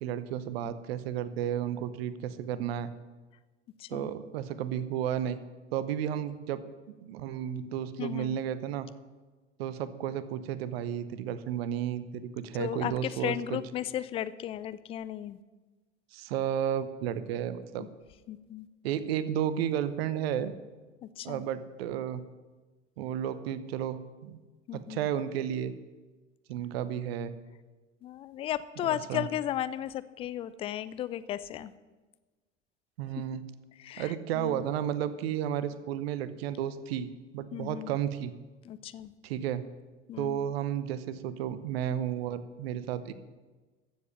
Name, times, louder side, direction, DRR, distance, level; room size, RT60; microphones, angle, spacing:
voice 1, 0.0-2.9 3.9-5.4 5.7-6.6 7.0-8.9 9.6-13.6 16.1-17.9 18.8-20.5 21.2-22.2 23.0-24.4 24.7-25.7 26.5-27.3 28.8-29.3 33.0-33.4 34.0-38.3 39.2-39.7 40.2-43.1, right 10 dB, 55° right, 14 dB, 0.9 m, -32 dB
voice 2, 3.8-4.1 8.0-8.4 12.6-15.4 17.8-17.9 18.3-18.7 21.0-21.4 24.7-25.1 28.0-31.7 33.8-34.7 37.5-37.9 38.7-39.1 40.1-40.5, left 11 dB, 15° left, 16 dB, 0.3 m, -35 dB
14.5 x 7.4 x 7.1 m, 1.3 s
figure-of-eight pair, 80°, 37 cm